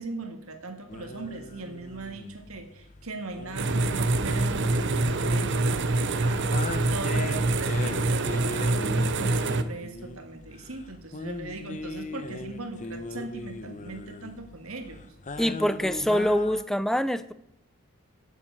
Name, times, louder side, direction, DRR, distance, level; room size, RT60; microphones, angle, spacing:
voice 1, 0.0-15.1, right 2 dB, 70° right, 6 dB, 1.9 m, -39 dB
sound 1, 0.9-16.6, left 2 dB, 35° left, 0.9 m, -39 dB
sound 2, 3.6-9.6, right 2 dB, 55° right, 0.8 m, -25 dB
voice 2, 15.4-17.3, equal, ahead, 14 dB, 0.5 m, -25 dB
10.0 x 7.6 x 8.0 m, 0.80 s
head